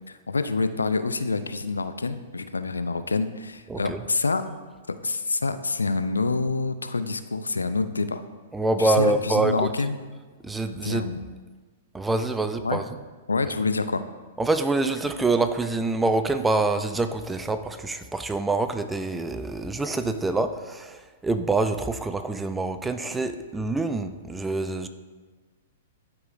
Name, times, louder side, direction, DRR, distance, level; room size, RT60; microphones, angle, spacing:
voice 1, 0.1-4.5 5.0-8.2 8.8-10.0 10.8-11.2 12.6-12.8 13.3-14.0, left 4 dB, 85° left, 11 dB, 0.4 m, -27 dB
voice 2, 3.7-4.0 8.5-9.7 10.4-11.1 11.9-12.8 14.4-24.9, right 3 dB, 10° right, 9 dB, 0.4 m, -26 dB
12.0 x 4.8 x 2.6 m, 1.4 s
figure-of-eight pair, 110°, 0 cm